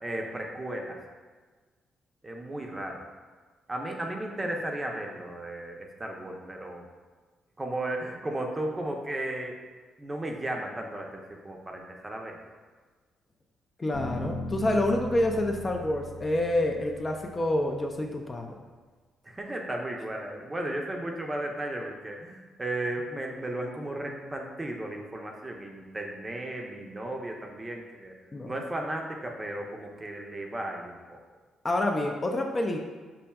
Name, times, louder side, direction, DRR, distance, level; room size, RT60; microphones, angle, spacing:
voice 1, 0.0-1.0 2.2-3.0 3.7-6.9 7.6-9.6 10.0-12.4 19.2-28.1 28.4-31.2, right 1 dB, 20° right, 1 dB, 0.5 m, -35 dB
voice 2, 13.8-18.6 28.3-28.5 31.6-32.8, left 1 dB, 25° left, 2 dB, 0.3 m, -27 dB
sound 1, 13.9-18.0, left 1 dB, 50° left, 0.7 m, -39 dB
5.5 x 2.5 x 2.3 m, 1.4 s
cardioid pair, 90°, 0 cm